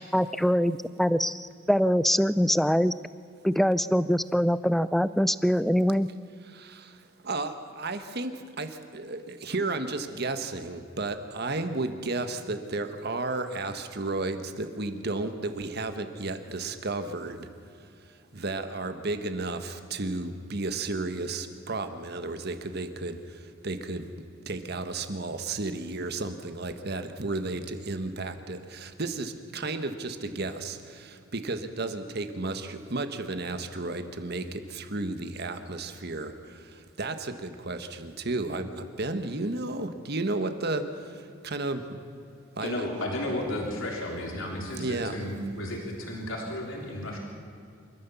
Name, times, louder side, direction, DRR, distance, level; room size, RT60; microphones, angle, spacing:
voice 1, 0.1-2.9 3.4-6.1, equal, ahead, 15 dB, 0.4 m, -24 dB
voice 2, 6.5-6.9 7.2-8.3 8.6-17.5 18.3-23.2 23.6-24.0 24.5-36.3 37.0-40.9 41.4-41.8 42.6-43.1 44.8-45.2, right 2 dB, 50° right, 8 dB, 1.4 m, -33 dB
voice 3, 42.6-47.2, left 1 dB, 75° left, -1 dB, 3.5 m, -33 dB
27.5 x 14.0 x 7.0 m, 2.5 s
head